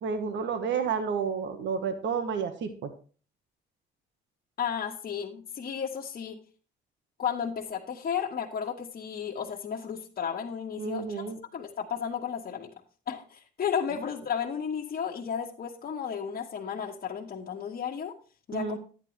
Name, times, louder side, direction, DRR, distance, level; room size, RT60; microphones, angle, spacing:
voice 1, 0.0-2.9 10.8-11.4 18.5-18.8, right 6 dB, 70° right, 8 dB, 1.4 m, -30 dB
voice 2, 4.6-6.4 7.2-11.2 11.5-12.7 13.1-18.1 18.5-18.8, left 7 dB, 50° left, -2 dB, 1.5 m, -33 dB
10.5 x 9.6 x 3.2 m, 0.38 s
cardioid pair, 90°, 20 cm